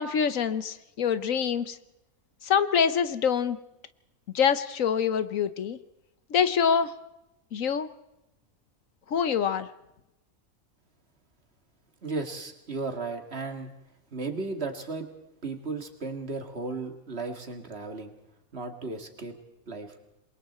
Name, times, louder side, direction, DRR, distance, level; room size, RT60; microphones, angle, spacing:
voice 1, 0.0-1.8 2.4-3.6 4.3-5.8 6.3-6.9 7.5-7.9 9.1-9.7, left 7 dB, 70° left, 13 dB, 1.3 m, -25 dB
voice 2, 12.0-13.7 14.1-15.1 15.4-18.1 18.5-19.3 19.7-19.9, right 3 dB, 45° right, 5 dB, 2.4 m, -35 dB
27.5 x 22.5 x 4.3 m, 0.91 s
omnidirectional pair, 1.5 m